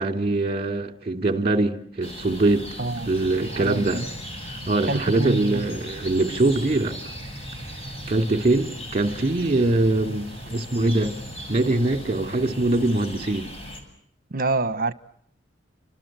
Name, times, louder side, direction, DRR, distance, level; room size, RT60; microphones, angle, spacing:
voice 1, 0.0-2.7 3.1-4.0 4.4-7.0 8.1-11.1 11.5-13.5, right 2 dB, 30° right, 3.0 m, -23 dB
sound 1, 2.0-13.8, equal, 30° left, 7.4 m, -39 dB
voice 2, 2.8-3.1 3.5-4.0 4.9-5.6 14.3-14.9, right 2 dB, 50° right, 1.2 m, -26 dB
sound 2, 3.2-13.1, right 1 dB, 10° right, 5.9 m, -41 dB
28.5 x 26.0 x 7.6 m
head